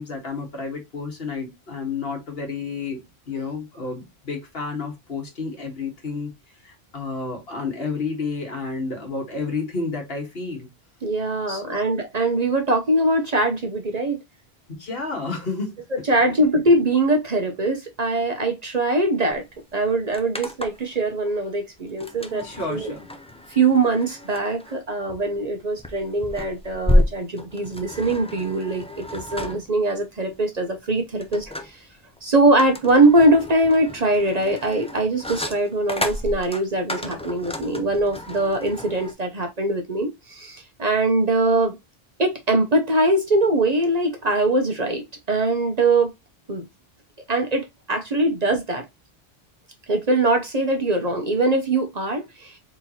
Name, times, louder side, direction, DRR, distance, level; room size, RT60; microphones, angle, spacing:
voice 1, 0.0-6.3 6.6-10.7 11.5-11.8 14.8-15.8 22.3-23.1, left 4 dB, 70° left, 1.8 m, -31 dB
voice 2, 11.0-14.2 15.9-19.5 19.7-22.9 23.5-31.8 32.2-41.8 42.2-46.1 46.5-46.6 47.3-48.9 49.9-52.6, right 2 dB, 45° right, 0.8 m, -22 dB
sound 1, 19.3-19.4 19.7-20.9 22.0-39.1, left 1 dB, 5° left, 0.5 m, -30 dB
4.5 x 3.7 x 2.8 m
omnidirectional pair, 1.1 m